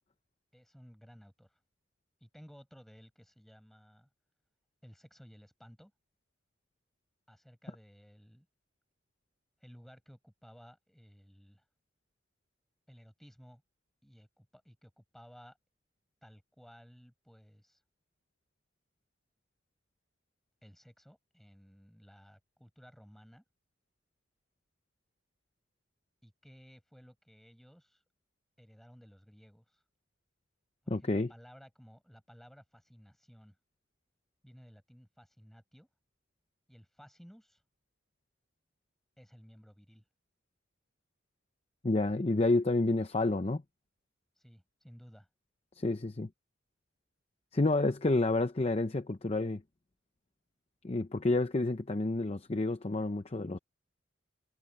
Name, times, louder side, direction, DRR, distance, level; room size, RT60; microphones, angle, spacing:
voice 1, 0.5-1.6 2.2-4.1 4.8-5.9 7.3-8.5 9.6-11.6 12.9-13.6 14.0-15.6 16.2-17.8 20.6-23.4 26.2-28.0 28.6-29.8 30.8-33.6 34.4-35.9 36.7-37.6 39.2-40.1 44.4-45.3, equal, ahead, 6.5 m, -57 dB
voice 2, 30.9-31.3 41.8-43.6 45.8-46.3 47.5-49.6 50.8-53.6, left 2 dB, 30° left, 0.6 m, -29 dB
head